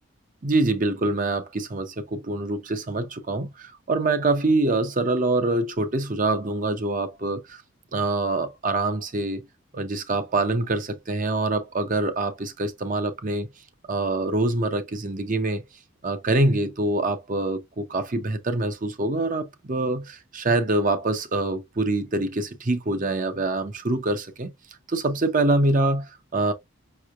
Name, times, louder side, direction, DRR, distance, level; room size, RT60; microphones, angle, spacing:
voice 1, 0.4-7.6 7.9-9.5 9.7-13.5 13.9-15.6 16.0-24.5 24.9-26.5, right 2 dB, 40° right, 0.6 m, -25 dB
5.4 x 3.1 x 2.4 m
head